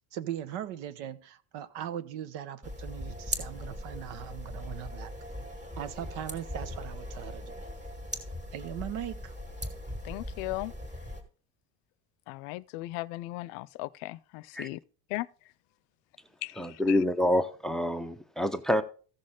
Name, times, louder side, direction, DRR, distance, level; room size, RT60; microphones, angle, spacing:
voice 1, 0.1-5.1 5.8-7.6 8.5-9.3, right 10 dB, 80° right, 1.2 m, -39 dB
sound 1, 2.6-11.2, equal, 15° right, 1.9 m, -39 dB
voice 2, 10.0-10.7 12.3-14.8 15.1-15.3 16.4-17.0, left 19 dB, 85° left, 0.6 m, -37 dB
voice 3, 16.6-18.8, left 1 dB, ahead, 0.5 m, -27 dB
14.5 x 6.4 x 3.7 m
cardioid pair, 155°, 42 cm